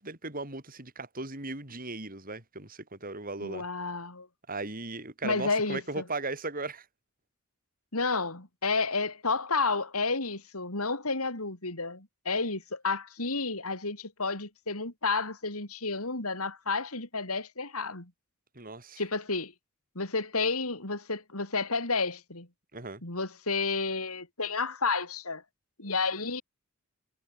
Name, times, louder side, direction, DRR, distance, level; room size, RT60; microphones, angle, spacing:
voice 1, 0.0-3.6 4.5-6.9 18.5-19.0 22.7-23.0, right 3 dB, 40° right, 5.6 m, -37 dB
voice 2, 3.4-4.3 5.2-6.0 7.9-18.1 19.0-19.5 20.0-22.5 23.0-25.4 25.8-26.4, left 4 dB, 90° left, 5.5 m, -31 dB
head